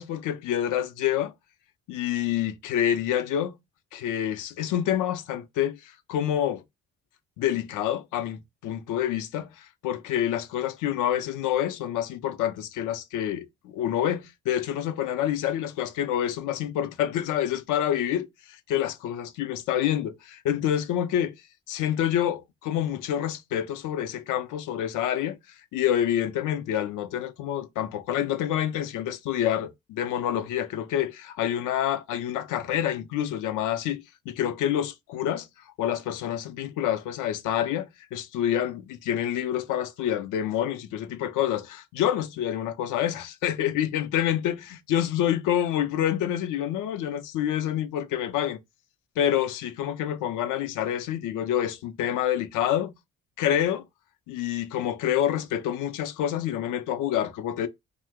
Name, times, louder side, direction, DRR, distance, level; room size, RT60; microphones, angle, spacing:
voice 1, 0.0-1.3 1.9-3.5 3.9-6.6 7.4-18.3 18.7-21.3 21.7-25.4 25.7-35.5 35.8-48.6 49.2-52.9 53.4-53.8 54.3-57.7, left 10 dB, 85° left, 0.5 m, -27 dB
2.8 x 2.0 x 3.4 m
cardioid pair, 90°, 30 cm